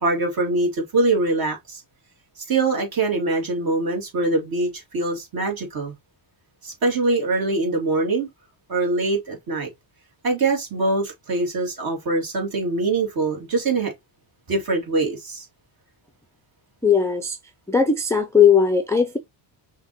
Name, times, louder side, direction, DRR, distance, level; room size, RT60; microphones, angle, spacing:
voice 1, 0.0-1.8 2.5-5.9 6.6-8.3 8.7-9.7 10.2-13.9 14.5-15.5, right 3 dB, 50° right, 2.4 m, -23 dB
voice 2, 16.8-17.4 17.7-19.2, left 6 dB, 5° left, 0.4 m, -18 dB
5.7 x 2.9 x 2.8 m
cardioid pair, 120°, 47 cm